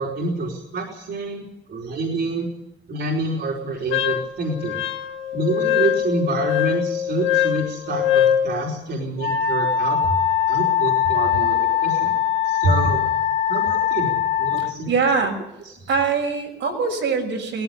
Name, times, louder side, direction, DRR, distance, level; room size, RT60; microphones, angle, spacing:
voice 1, 0.0-2.5 2.9-4.8 5.3-10.0 10.5-12.1 12.4-13.0 13.5-14.1 14.4-15.0 15.8-15.9, right 2 dB, 60° right, -2 dB, 4.5 m, -27 dB
Wind instrument woodwind instrument, 3.9-8.5, left 10 dB, 85° left, 1.6 m, -22 dB
Wind instrument woodwind instrument 2, 9.2-14.7, left 9 dB, 60° left, 2.1 m, -21 dB
voice 2, 14.6-15.4 15.9-17.6, right 5 dB, 75° right, 1 dB, 6.1 m, -23 dB
18.0 x 15.0 x 9.9 m, 0.92 s
cardioid pair, 90°, 20 cm